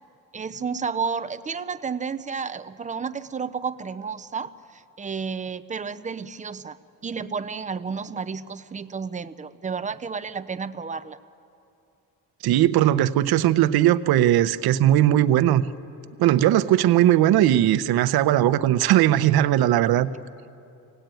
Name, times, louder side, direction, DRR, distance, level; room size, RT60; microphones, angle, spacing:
voice 1, 0.3-6.8 7.0-11.2, right 5 dB, 20° right, 12 dB, 0.5 m, -31 dB
voice 2, 12.4-15.6 16.2-20.1, right 12 dB, 85° right, 13 dB, 0.8 m, -19 dB
25.0 x 18.5 x 9.1 m, 2.7 s
cardioid pair, 175°, 36 cm